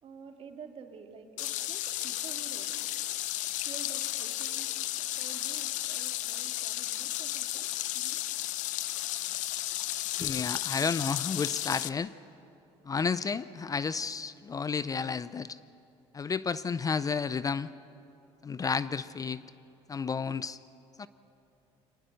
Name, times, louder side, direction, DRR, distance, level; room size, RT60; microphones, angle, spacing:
voice 1, 0.0-2.7 3.6-4.7 5.2-8.2, right 5 dB, 45° right, 4 dB, 2.1 m, -49 dB
sound 1, 1.4-11.9, left 15 dB, 70° left, 0.6 m, -33 dB
voice 2, 10.2-12.1 12.9-15.6 16.1-17.7 18.4-19.4 19.9-20.6 21.0-21.1, left 5 dB, 25° left, 16 dB, 0.5 m, -31 dB
24.5 x 19.5 x 6.5 m, 2.8 s
supercardioid pair, 95°, 13 cm